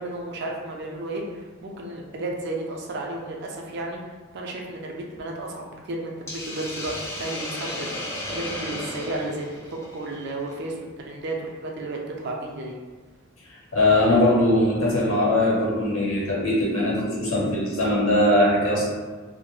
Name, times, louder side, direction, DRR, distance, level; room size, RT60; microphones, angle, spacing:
voice 1, 0.0-10.8 11.1-12.8, right 2 dB, 55° right, 0 dB, 0.4 m, -33 dB
Hiss, 6.3-10.5, left 1 dB, 15° left, 0.3 m, -34 dB
voice 2, 13.7-18.8, left 1 dB, 70° left, -4 dB, 0.8 m, -21 dB
2.2 x 2.0 x 3.0 m, 1.4 s
head